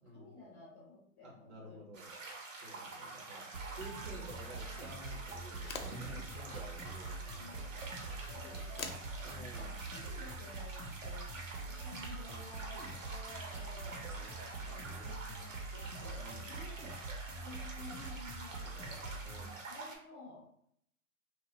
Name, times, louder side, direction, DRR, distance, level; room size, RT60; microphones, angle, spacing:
voice 1, 0.1-1.9 7.3-7.5 8.3-11.3 11.7-14.3 14.6-16.9 17.4-19.2 19.7-20.6, left 3 dB, 15° left, -7 dB, 0.5 m, -54 dB
voice 2, 1.2-2.1 2.6-3.4 3.7-8.2 8.4-8.6 9.2-9.8 13.7-14.0 16.1-16.5 19.2-19.5, right 1 dB, 30° right, -2 dB, 1.0 m, -52 dB
sound 1, 1.9-20.0, right 3 dB, 60° right, 1.0 m, -48 dB
sound 2, 3.5-19.5, right 3 dB, 85° right, 0.8 m, -45 dB
sound 3, 5.4-11.8, left 5 dB, 70° left, 0.6 m, -51 dB
2.9 x 2.3 x 2.7 m, 0.67 s
hypercardioid pair, 135°, 44 cm